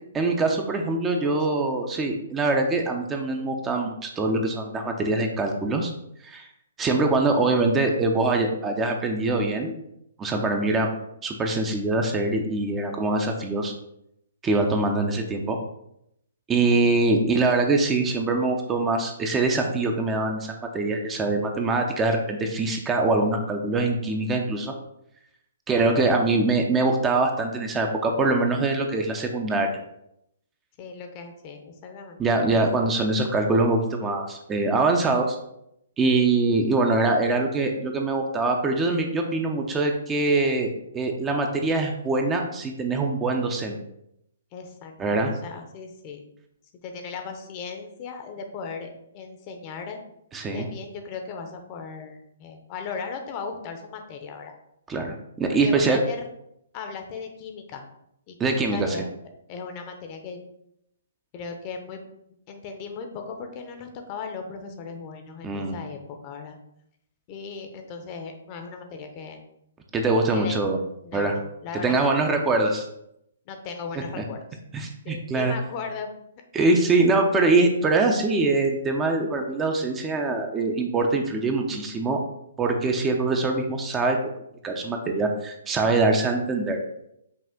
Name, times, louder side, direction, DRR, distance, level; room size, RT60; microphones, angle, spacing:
voice 1, 0.1-5.9 6.2-6.4 6.8-9.8 10.2-10.9 11.2-13.7 14.4-15.6 16.5-24.7 25.7-29.7 32.2-35.4 36.0-43.8 45.0-45.3 50.3-50.7 54.9-56.0 58.4-59.0 65.4-65.8 69.9-70.8 71.1-71.4 71.7-72.8 74.2-74.3 74.7-75.5 76.5-82.2 82.6-84.2 84.6-86.8, right 3 dB, 15° right, 3 dB, 0.5 m, -23 dB
voice 2, 1.1-1.5 16.7-17.0 25.8-26.0 30.8-32.2 33.0-33.1 44.5-46.2 46.8-50.0 50.5-54.5 55.5-56.2 56.7-57.9 58.3-59.1 59.5-60.4 61.3-62.0 62.5-66.5 67.3-69.4 70.3-70.6 71.0-72.1 73.5-74.6 75.0-76.1, left 5 dB, 35° left, 5 dB, 0.7 m, -37 dB
5.6 x 2.4 x 3.6 m, 0.78 s
figure-of-eight pair, 130°, 0 cm